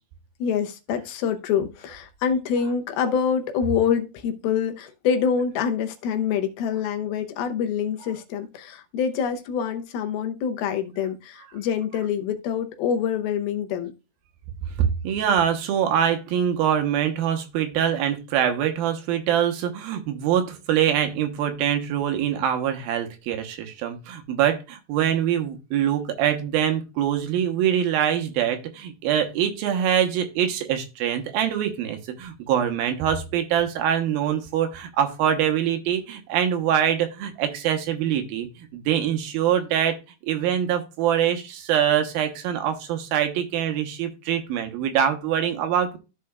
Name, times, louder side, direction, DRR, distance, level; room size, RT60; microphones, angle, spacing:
voice 1, 0.4-13.9, left 7 dB, 85° left, 2.8 m, -26 dB
voice 2, 14.8-40.0 40.2-46.0, right 9 dB, 80° right, 2.8 m, -24 dB
14.0 x 4.8 x 2.3 m
omnidirectional pair, 4.3 m